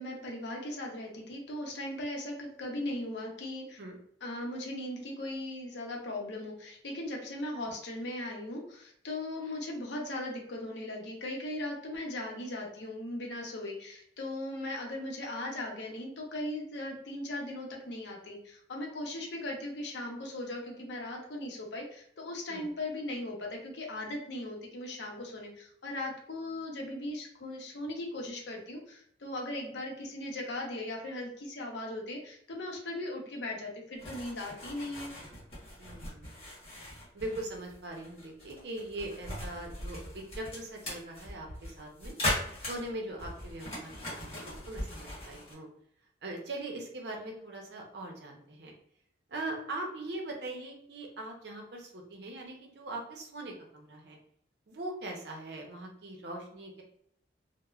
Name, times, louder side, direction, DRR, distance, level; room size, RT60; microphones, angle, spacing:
voice 1, 0.0-3.8 4.2-35.2, left 1 dB, 75° left, 0 dB, 0.6 m, -38 dB
sound 1, 34.0-45.5, left 1 dB, 35° left, 1.1 m, -39 dB
voice 2, 35.8-36.4 37.1-42.1 42.6-45.7 46.2-48.7 49.3-54.2 54.7-56.8, right 2 dB, 65° right, 1 dB, 0.6 m, -41 dB
3.0 x 2.0 x 2.3 m, 0.69 s
head